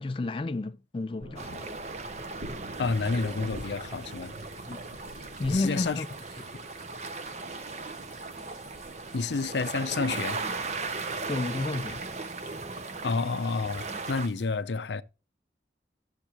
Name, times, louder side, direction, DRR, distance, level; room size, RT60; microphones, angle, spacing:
voice 1, 0.0-1.7 4.7-6.1 11.3-12.1, left 2 dB, 30° left, 0.4 m, -32 dB
sound 1, 1.2-13.2, equal, 65° right, 3.6 m, -49 dB
Water Lapping Rocky Beach Ambiance, 1.4-14.3, right 3 dB, 40° right, 0.8 m, -37 dB
sound 2, 2.7-14.5, right 2 dB, 25° right, 3.1 m, -57 dB
voice 2, 2.8-4.3 5.5-6.0 9.1-10.4 13.0-15.0, left 4 dB, 85° left, 0.6 m, -29 dB
13.5 x 7.2 x 2.9 m
head